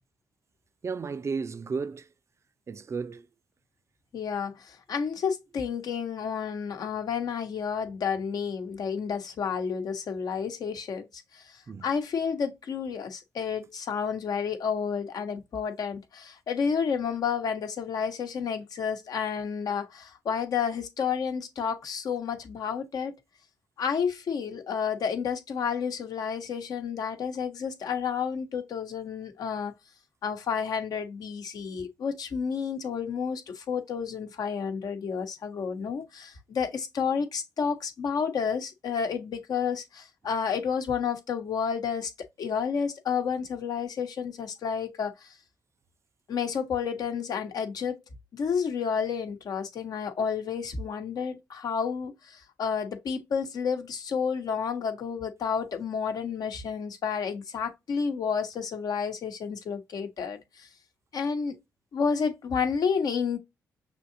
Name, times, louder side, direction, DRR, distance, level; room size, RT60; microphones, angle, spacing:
voice 1, 0.8-2.1 2.7-3.3 11.7-11.9, right 5 dB, 40° right, 0.5 m, -33 dB
voice 2, 4.1-11.1 11.3-11.4 11.8-23.1 23.8-29.7 30.2-42.1 42.4-45.3 46.3-48.0 48.3-60.7 61.1-61.5 61.9-63.4, left 6 dB, 65° left, 1.0 m, -30 dB
6.1 x 2.8 x 2.6 m
hypercardioid pair, 45°, 7 cm